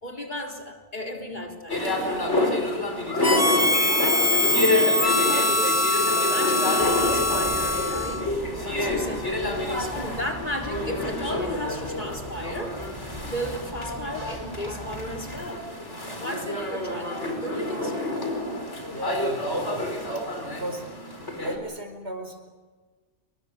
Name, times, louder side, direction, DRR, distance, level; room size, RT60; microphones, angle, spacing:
voice 1, 0.0-2.6 3.3-8.2 8.6-12.8 13.3-15.7 16.2-18.1, left 1 dB, 40° left, 1 dB, 4.0 m, -35 dB
sound 1, 1.7-21.6, left 2 dB, 80° left, 5.0 m, -28 dB
Harmonica, 3.2-8.3, left 1 dB, 15° left, 1.6 m, -23 dB
sound 2, 6.8-15.5, equal, 20° right, 4.7 m, -40 dB
voice 2, 18.9-19.8 20.1-20.9 21.4-22.5, right 1 dB, 65° right, 6 dB, 4.7 m, -36 dB
28.0 x 23.5 x 6.8 m, 1.4 s
omnidirectional pair, 1.2 m